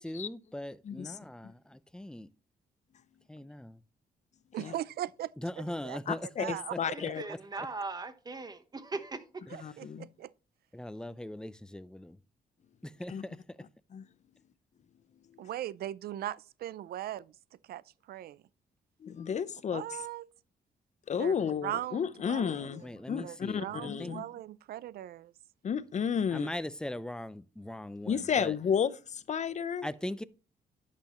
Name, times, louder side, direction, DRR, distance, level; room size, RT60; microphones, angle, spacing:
voice 1, 0.0-2.3 3.3-3.8 5.4-7.7 9.5-9.8 10.7-12.2 12.8-13.6 22.8-24.2 26.3-28.6 29.8-30.2, left 1 dB, 5° left, 0.5 m, -40 dB
voice 2, 0.8-1.2 4.6-4.7 6.1-7.2 9.6-10.1 13.1-13.2 13.9-14.1 19.0-19.8 21.1-24.2 25.6-26.5 28.1-29.9, left 7 dB, 45° left, 0.7 m, -32 dB
voice 3, 4.5-5.3 5.6-6.9 9.5-10.3 15.4-17.4 17.7-17.8 18.1-18.4 19.7-20.3 21.2-22.7 23.2-25.3, right 13 dB, 75° right, 0.4 m, -39 dB
voice 4, 6.9-9.2, right 3 dB, 25° right, 1.1 m, -39 dB
10.5 x 6.8 x 3.0 m
cardioid pair, 100°, 16 cm